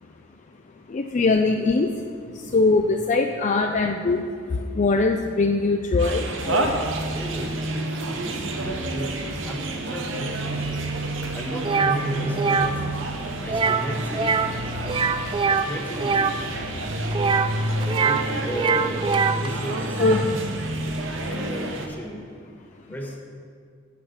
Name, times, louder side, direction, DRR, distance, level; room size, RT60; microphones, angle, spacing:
voice 1, 0.9-6.8 20.0-20.2 21.0-21.1, left 3 dB, 40° left, 4 dB, 0.4 m, -22 dB
sound 1, 6.0-21.9, right 1 dB, 70° right, 1.0 m, -29 dB
voice 2, 7.1-8.4 8.6-10.5 11.3-12.7 13.4-14.7 15.5-16.2 18.0-19.0 19.3-20.0 21.3-22.2 22.9-23.2, equal, 10° left, -1 dB, 1.5 m, -33 dB
sound 2, 11.6-12.0 12.3-12.7 13.5-13.9 14.1-14.5 14.8-16.3 17.1-18.2 18.5-19.5, right 5 dB, 25° right, 0.3 m, -23 dB
8.5 x 8.3 x 5.8 m, 2.1 s
head